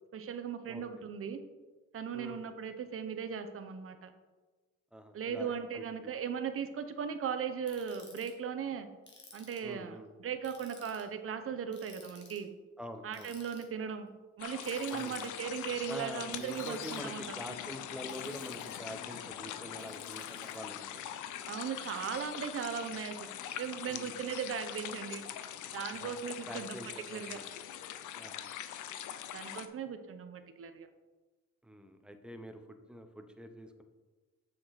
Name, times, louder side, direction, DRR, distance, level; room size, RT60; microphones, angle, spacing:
voice 1, 0.1-1.4 1.9-4.1 5.1-8.9 9.3-12.5 13.0-14.1 14.4-17.4 21.5-23.3 23.6-25.2 25.7-26.8 27.1-27.4 29.3-30.9, right 7 dB, 45° right, 8 dB, 0.8 m, -38 dB
voice 2, 4.9-6.1 9.6-10.1 12.8-13.3 14.9-15.2 15.9-21.1 23.8-24.1 26.0-26.1 26.5-27.4 28.1-28.5 31.6-33.8, equal, 5° right, 6 dB, 0.9 m, -46 dB
Ratchet pawl, 7.7-8.3 9.1-9.7 10.4-11.0 11.7-12.4 13.1-13.6 14.6-15.3 16.3-17.0 18.1-18.9 19.8-20.6, left 3 dB, 35° left, 2.0 m, -55 dB
sound 1, 14.4-29.7, left 10 dB, 80° left, 0.6 m, -42 dB
7.4 x 6.2 x 4.1 m, 1.3 s
cardioid pair, 90°, 30 cm